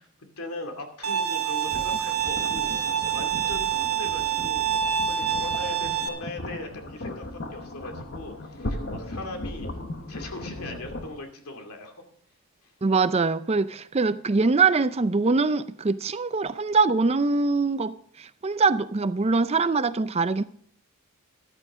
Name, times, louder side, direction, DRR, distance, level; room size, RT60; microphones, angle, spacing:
voice 1, 0.4-9.7 10.1-11.9, left 2 dB, 90° left, 2.5 m, -39 dB
Bowed string instrument, 1.0-6.1, right 9 dB, 75° right, 1.5 m, -26 dB
sound 1, 1.7-11.1, left 1 dB, 50° left, 1.2 m, -37 dB
voice 2, 12.8-20.4, right 4 dB, 30° right, 0.4 m, -23 dB
14.0 x 12.0 x 3.7 m
head